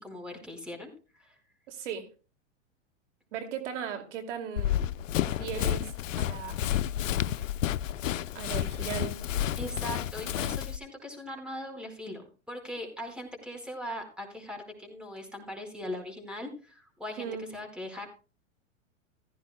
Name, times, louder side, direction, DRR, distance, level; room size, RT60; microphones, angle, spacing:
voice 1, 0.0-1.4 9.6-18.1, left 1 dB, ahead, 3 dB, 4.7 m, -40 dB
voice 2, 1.7-2.1 3.3-4.9 5.3-6.6 8.3-9.2 17.2-17.5, right 8 dB, 65° right, 6 dB, 2.6 m, -37 dB
Run, 4.6-10.8, left 12 dB, 75° left, 0.7 m, -30 dB
16.0 x 14.5 x 2.3 m, 0.35 s
hypercardioid pair, 110°, 39 cm